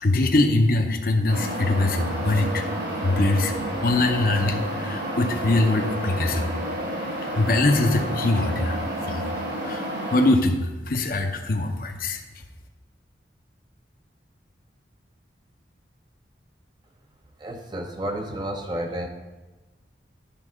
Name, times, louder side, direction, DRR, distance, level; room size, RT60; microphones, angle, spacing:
voice 1, 0.0-2.7 3.0-3.5 3.8-6.5 7.3-9.2 9.6-9.8 10.1-12.2, left 2 dB, 50° left, 3 dB, 0.7 m, -22 dB
sound 1, 1.3-10.3, right 1 dB, 70° right, 3.0 m, -30 dB
voice 2, 17.4-19.1, right 1 dB, 25° right, 3 dB, 0.6 m, -31 dB
10.5 x 4.1 x 6.4 m, 1.2 s
head